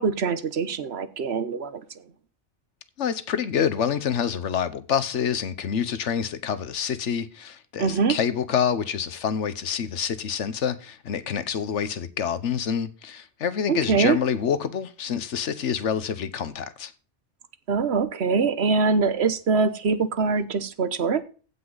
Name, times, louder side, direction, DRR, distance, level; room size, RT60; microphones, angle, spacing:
voice 1, 0.0-1.8 7.8-8.1 13.7-14.2 17.7-21.2, right 5 dB, 65° right, 1.2 m, -23 dB
voice 2, 3.0-16.9, left 7 dB, 90° left, 1.3 m, -27 dB
15.5 x 5.6 x 4.0 m
omnidirectional pair, 1.2 m